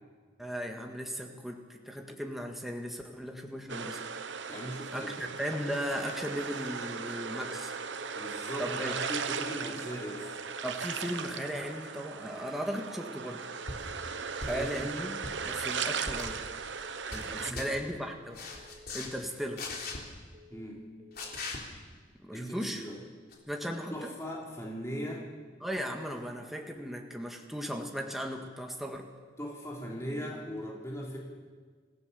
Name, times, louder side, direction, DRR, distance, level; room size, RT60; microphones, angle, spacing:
voice 1, 0.4-4.0 4.9-7.7 8.6-9.0 10.6-13.4 14.4-16.4 17.1-18.6 18.9-19.7 22.2-22.8 23.5-24.1 25.6-29.1, equal, ahead, 2 dB, 1.8 m, -37 dB
sound 1, 3.7-17.5, right 6 dB, 85° right, 1.1 m, -37 dB
voice 2, 4.5-5.3 8.1-10.4 14.5-14.9 17.3-17.8 20.5-20.8 22.3-23.0 23.9-25.3 29.4-31.2, equal, 15° left, -3 dB, 3.4 m, -39 dB
sound 2, 7.8-8.2 8.5-8.9 9.6-10.0 10.3-10.7 11.0-11.4 12.1-12.5 12.8-13.2 13.5-13.9 14.6-15.0 15.3-15.7 16.0-16.4 17.1-17.5 17.8-18.2 18.5-18.9 19.7-20.1 20.3-20.7 21.0-21.4, left 1 dB, 35° right, 3.0 m, -56 dB
sound 3, 13.7-13.9 14.4-14.8 15.1-15.4 16.0-16.3 16.8-17.3 17.6-17.7 18.3-19.1 19.6-20.0 21.2-21.6 23.3-23.4, left 3 dB, 55° left, 3.6 m, -39 dB
26.0 x 16.0 x 7.0 m, 1.5 s
head